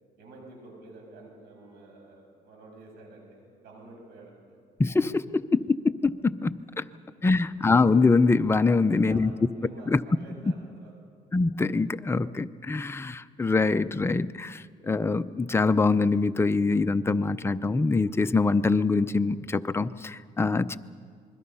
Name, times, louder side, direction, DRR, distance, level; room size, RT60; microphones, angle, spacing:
voice 1, 0.2-4.6 6.9-7.4 8.7-10.9 12.6-12.8, right 2 dB, 75° right, 1 dB, 6.6 m, -49 dB
voice 2, 4.8-6.8 7.2-9.3 9.9-10.0 11.3-20.8, left 3 dB, 15° left, 11 dB, 0.6 m, -24 dB
27.0 x 21.5 x 5.6 m, 2.1 s
cardioid pair, 110°, 17 cm